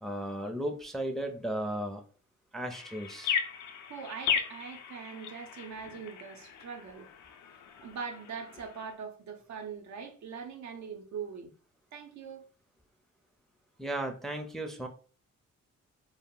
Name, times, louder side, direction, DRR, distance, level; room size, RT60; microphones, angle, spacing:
voice 1, 0.0-2.0 2.5-3.3 13.8-14.9, right 1 dB, ahead, 0.5 m, -35 dB
sound 1, 2.7-8.9, left 7 dB, 75° left, 0.5 m, -37 dB
voice 2, 3.9-7.1 7.8-11.5 11.9-12.5, right 6 dB, 70° right, 0.6 m, -42 dB
2.2 x 2.0 x 3.6 m
cardioid pair, 70°, 29 cm